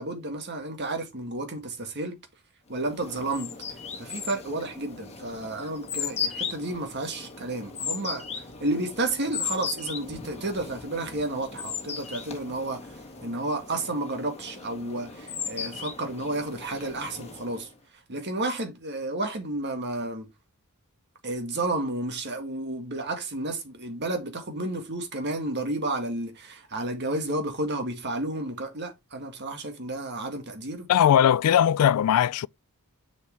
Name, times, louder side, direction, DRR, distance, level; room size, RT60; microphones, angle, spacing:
voice 1, 0.0-2.2 2.7-3.6 4.0-17.7 18.1-20.3 21.2-30.9, right 2 dB, 50° right, 1.9 m, -31 dB
sound 1, 2.8-17.7, left 6 dB, 30° left, 1.8 m, -37 dB
voice 2, 30.9-32.5, left 9 dB, 80° left, 0.3 m, -19 dB
6.9 x 6.4 x 3.4 m
head